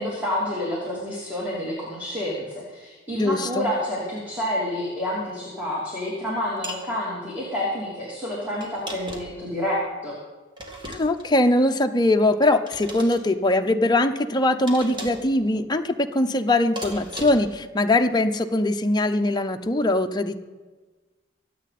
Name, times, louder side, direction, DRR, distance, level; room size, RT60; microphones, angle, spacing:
voice 1, 0.0-10.1, left 1 dB, 10° right, -6 dB, 3.1 m, -29 dB
voice 2, 3.2-3.7 10.9-20.4, left 1 dB, 20° left, 5 dB, 0.7 m, -21 dB
sound 1, 6.6-6.9 8.6-9.4 10.6-11.3 12.7-13.2 14.7-15.3 16.8-17.6, equal, 25° right, 2.0 m, -36 dB
24.5 x 8.3 x 4.2 m, 1.3 s
head